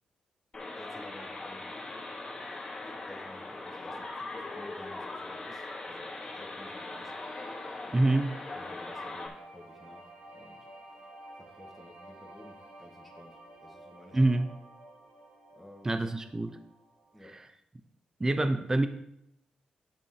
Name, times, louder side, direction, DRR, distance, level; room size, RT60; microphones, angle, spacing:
sound 1, 0.5-9.3, left 2 dB, 30° left, 2.5 m, -40 dB
voice 1, 0.8-2.1 2.8-7.1 7.8-8.2 8.5-10.7 11.4-14.2 15.6-16.1 17.1-17.4, left 1 dB, ahead, -1 dB, 1.7 m, -52 dB
sound 2, 6.1-17.2, right 1 dB, 90° right, 1.8 m, -52 dB
voice 2, 7.9-8.3 14.1-14.5 15.8-16.6 17.3-17.4 18.2-18.9, right 2 dB, 20° right, 9 dB, 0.7 m, -26 dB
10.5 x 5.3 x 4.8 m, 0.78 s
cardioid pair, 80°, 3 cm